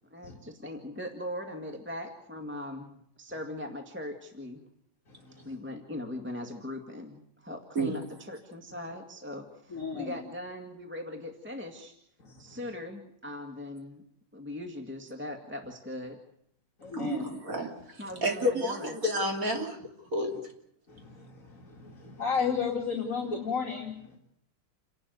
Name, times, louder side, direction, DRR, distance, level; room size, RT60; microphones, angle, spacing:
voice 1, 0.1-4.7 5.3-11.9 12.4-14.0 14.3-16.2 18.0-18.9, left 1 dB, 5° right, 3 dB, 1.9 m, -40 dB
voice 2, 5.1-5.5 9.7-10.2 12.2-12.6 16.8-17.3 20.9-24.2, left 6 dB, 40° left, 0 dB, 2.7 m, -34 dB
voice 3, 16.9-20.5, equal, 40° right, 2 dB, 3.4 m, -31 dB
29.0 x 12.0 x 9.4 m, 0.73 s
omnidirectional pair, 2.3 m